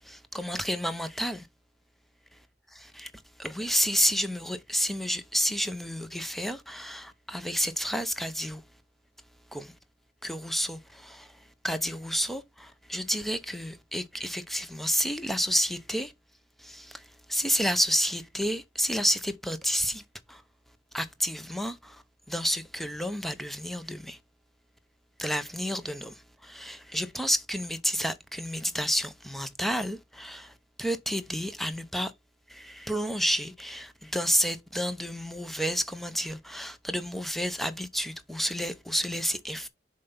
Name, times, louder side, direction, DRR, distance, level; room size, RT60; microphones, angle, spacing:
voice 1, 0.0-1.5 3.0-3.1 3.4-8.6 9.5-9.7 10.2-11.3 11.6-16.1 16.6-20.0 20.3-20.4 20.9-22.0 22.3-24.2 25.2-30.5 30.8-32.1 32.5-39.7, equal, ahead, 0.7 m, -30 dB
7.3 x 3.4 x 5.6 m
head